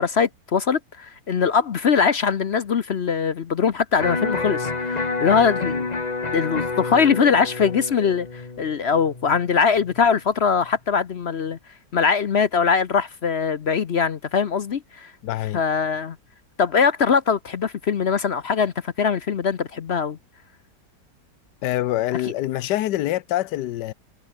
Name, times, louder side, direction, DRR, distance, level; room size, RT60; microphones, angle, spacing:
voice 1, 0.0-5.9 6.3-11.6 11.9-15.1 15.5-16.2 16.6-20.2, left 6 dB, 50° left, 0.8 m, -22 dB
Electric guitar, 4.0-10.0, left 3 dB, 25° left, 1.5 m, -29 dB
voice 2, 15.2-15.6 21.6-23.9, left 14 dB, 80° left, 1.3 m, -25 dB
omnidirectional pair, 1.8 m